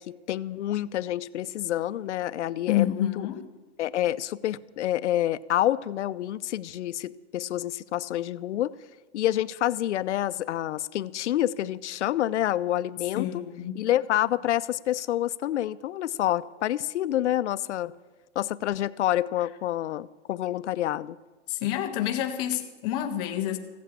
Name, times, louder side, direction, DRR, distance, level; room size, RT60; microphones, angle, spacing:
voice 1, 0.0-3.3 3.8-8.7 9.1-13.5 13.7-17.9 18.4-21.2, left 13 dB, 80° left, 0.6 m, -28 dB
voice 2, 2.7-3.5 13.1-13.8 21.5-23.6, left 12 dB, 15° left, 0.4 m, -28 dB
15.5 x 8.4 x 8.7 m
supercardioid pair, 170°, 34 cm